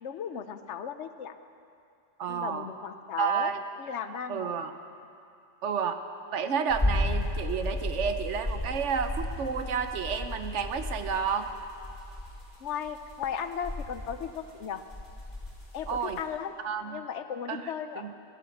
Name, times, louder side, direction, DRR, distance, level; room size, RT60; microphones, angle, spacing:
voice 1, 0.0-1.3 2.3-3.5 3.8-4.5 12.6-14.8 15.7-16.6 16.9-18.1, left 7 dB, 75° left, 10 dB, 1.0 m, -36 dB
voice 2, 2.2-2.7 3.2-3.6 4.3-4.7 5.6-6.0 6.3-11.5 15.9-16.2 16.6-17.0 17.5-18.1, right 6 dB, 75° right, 8 dB, 1.2 m, -31 dB
sound 1, 6.7-16.2, left 1 dB, 10° left, 4.3 m, -34 dB
16.0 x 12.0 x 7.1 m, 2.5 s
omnidirectional pair, 1.2 m